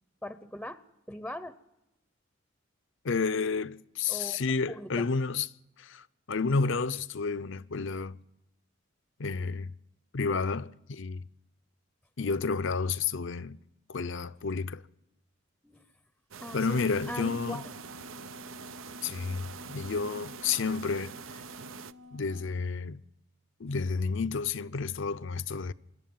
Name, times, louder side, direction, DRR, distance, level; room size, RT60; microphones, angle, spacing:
voice 1, 0.2-0.8 1.1-1.6 4.1-4.4 4.7-5.1 15.6-15.8 16.4-17.7, left 1 dB, 5° left, 0.7 m, -41 dB
voice 2, 3.0-5.5 5.8-8.2 9.2-9.7 10.1-11.3 12.2-13.6 13.9-14.8 16.5-17.6 19.0-21.1 22.1-23.0 23.6-25.7, left 4 dB, 65° left, 0.6 m, -31 dB
Wind instrument woodwind instrument, 16.3-22.6, left 3 dB, 65° right, 2.5 m, -50 dB
sound 1, 16.3-21.9, right 6 dB, 85° right, 0.7 m, -45 dB
25.5 x 11.0 x 9.4 m
head